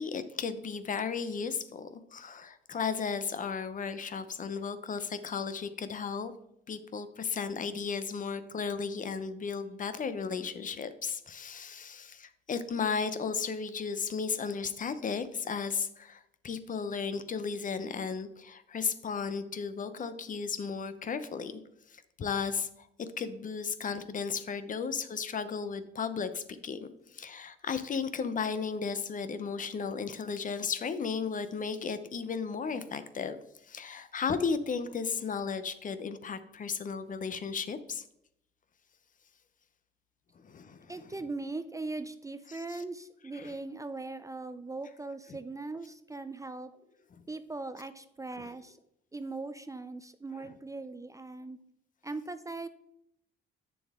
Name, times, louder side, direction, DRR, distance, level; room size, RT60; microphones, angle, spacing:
voice 1, 0.0-6.3 6.7-21.6 21.9-38.0 40.4-40.9 42.5-42.8 43.3-43.5 48.4-48.5, left 5 dB, 40° left, 12 dB, 0.7 m, -35 dB
voice 2, 40.9-46.7 47.3-48.8 49.1-51.6 52.0-52.7, right 3 dB, 15° right, 11 dB, 0.4 m, -40 dB
8.5 x 6.8 x 3.6 m, 0.77 s
cardioid pair, 90°, 20 cm